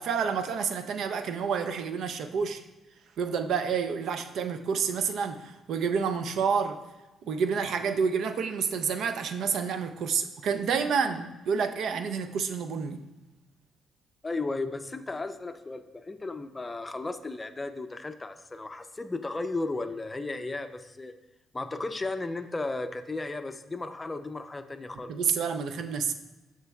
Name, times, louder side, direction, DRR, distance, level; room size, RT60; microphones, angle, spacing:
voice 1, 0.0-2.6 3.2-6.8 7.2-13.0 25.1-26.1, right 6 dB, 70° right, 9 dB, 0.5 m, -29 dB
voice 2, 14.2-21.1 21.5-25.1, left 2 dB, 20° left, 9 dB, 0.5 m, -35 dB
13.0 x 4.5 x 2.3 m, 1.1 s
cardioid pair, 90°, 0 cm